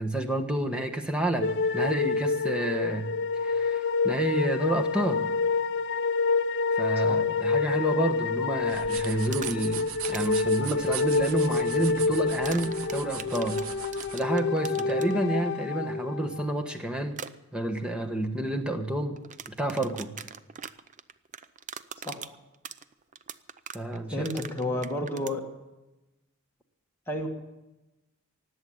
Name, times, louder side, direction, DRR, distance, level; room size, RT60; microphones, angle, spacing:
voice 1, 0.0-3.1 3.4-5.2 6.7-13.6 14.1-17.2 17.5-19.2 19.6-20.1 23.7-24.5, right 1 dB, 5° right, 3 dB, 1.3 m, -29 dB
sound 1, 1.4-16.5, left 4 dB, 55° left, 0.5 m, -28 dB
sound 2, 8.6-14.2, right 10 dB, 80° right, 0.6 m, -40 dB
sound 3, 9.1-9.8 10.0-10.4 12.4-15.1 17.1-17.3 19.2-25.4, right 7 dB, 35° right, 0.5 m, -41 dB
voice 2, 24.1-25.4 27.1-27.3, left 1 dB, 10° left, -1 dB, 1.7 m, -31 dB
18.5 x 8.0 x 8.7 m, 1.0 s
head